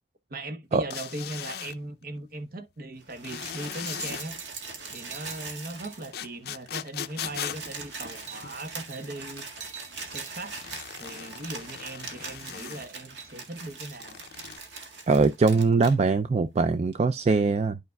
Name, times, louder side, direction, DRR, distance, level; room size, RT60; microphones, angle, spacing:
voice 1, 0.3-4.4 4.9-9.5 10.0-10.6 11.0-14.2, right 2 dB, 55° right, 0.9 m, -39 dB
sound 1, 0.9-1.8 3.2-4.3 6.1-8.7 10.4-12.9 13.9-14.6, left 9 dB, 60° left, 0.5 m, -39 dB
sound 2, 3.0-6.3 6.6-6.7 6.9-16.0 16.9-17.0, right 4 dB, 85° right, 1.7 m, -41 dB
voice 2, 15.1-17.8, right 4 dB, 35° right, 0.3 m, -22 dB
12.0 x 4.9 x 2.2 m
head